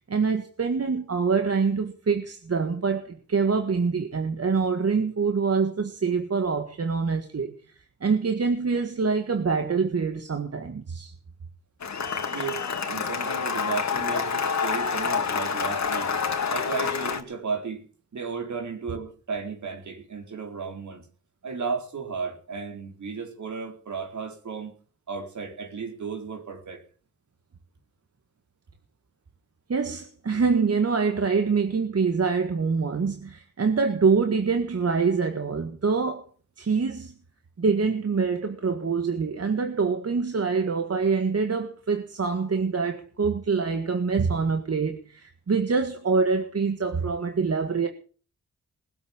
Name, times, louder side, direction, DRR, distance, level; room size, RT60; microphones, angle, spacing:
voice 1, 0.0-7.5 8.0-11.1 29.7-36.3 36.6-37.1 37.6-47.9, right 5 dB, 55° right, 1.7 m, -25 dB
Cheering / Applause, 11.8-17.2, left 6 dB, 65° left, 2.3 m, -27 dB
voice 2, 12.3-16.1 16.5-17.9 18.1-21.1 21.4-24.7 25.1-26.8, right 5 dB, 70° right, 4.3 m, -34 dB
20.5 x 8.0 x 7.3 m
cardioid pair, 65°, 30 cm